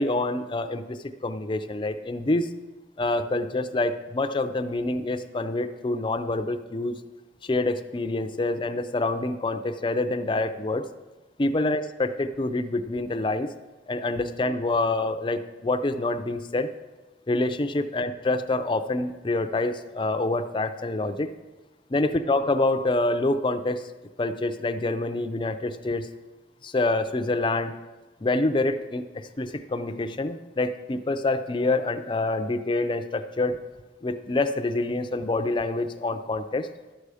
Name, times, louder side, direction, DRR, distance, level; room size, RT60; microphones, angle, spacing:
voice 1, 0.0-2.5 3.0-6.9 7.4-10.8 11.4-13.5 13.9-16.7 17.3-21.3 21.9-23.8 24.2-26.1 26.6-27.7 28.2-33.6 34.0-36.7, left 2 dB, 25° left, 8 dB, 0.5 m, -26 dB
12.0 x 6.8 x 4.9 m, 1.2 s
head